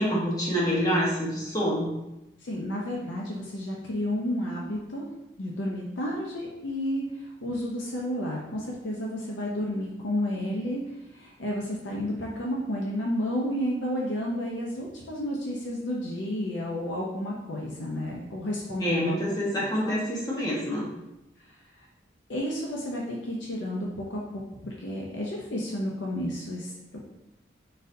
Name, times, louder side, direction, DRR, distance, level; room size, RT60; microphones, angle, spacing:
voice 1, 0.0-1.9 18.8-20.9, equal, 20° left, -6 dB, 1.1 m, -26 dB
voice 2, 2.4-5.0 5.4-19.2 19.5-20.0 21.8-21.9 22.3-27.1, equal, 85° left, -3 dB, 0.6 m, -31 dB
4.1 x 3.9 x 2.6 m, 0.92 s
head